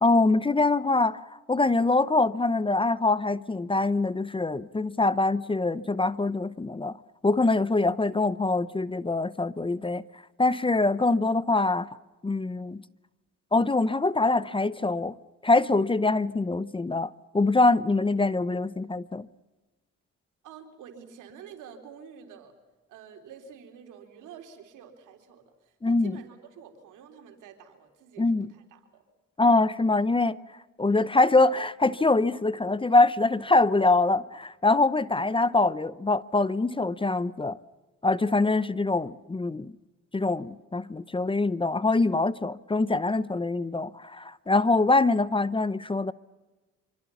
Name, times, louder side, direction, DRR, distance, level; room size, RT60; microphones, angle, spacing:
voice 1, 0.0-6.9 7.2-10.0 10.4-11.9 12.2-12.8 13.5-15.1 15.4-19.3 25.8-26.1 28.2-28.5 29.4-30.4 30.8-37.6 38.0-39.7 40.1-46.1, left 3 dB, 15° left, 0.7 m, -24 dB
voice 2, 20.4-22.6 22.9-29.0, right 7 dB, 90° right, 3.9 m, -48 dB
26.0 x 25.0 x 7.1 m
cardioid pair, 90°, 30 cm